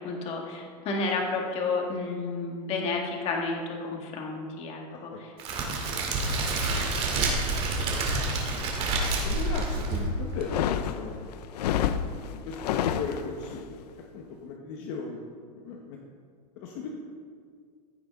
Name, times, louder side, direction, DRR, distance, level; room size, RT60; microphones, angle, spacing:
voice 1, 0.0-5.3, left 3 dB, 30° left, 1 dB, 1.8 m, -31 dB
Crackle, 5.4-10.4, right 2 dB, 30° right, 2.2 m, -28 dB
voice 2, 8.5-11.7 12.4-13.8 14.1-15.2 15.6-16.0 16.6-16.9, left 4 dB, 45° left, 0 dB, 1.2 m, -38 dB
sound 1, 10.3-13.6, left 9 dB, 75° left, 0.7 m, -29 dB
15.0 x 9.3 x 3.7 m, 2.1 s
supercardioid pair, 155°, 21 cm